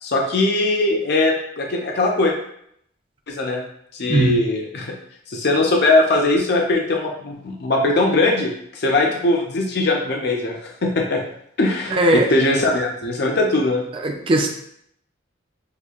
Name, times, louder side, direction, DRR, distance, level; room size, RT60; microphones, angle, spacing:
voice 1, 0.0-2.3 3.3-3.6 3.9-4.9 5.3-11.2 11.6-13.8, left 2 dB, 50° left, 1 dB, 0.5 m, -20 dB
voice 2, 11.9-12.3 13.9-14.5, right 1 dB, 25° right, 2 dB, 0.4 m, -18 dB
6.6 x 2.7 x 2.4 m, 0.71 s
head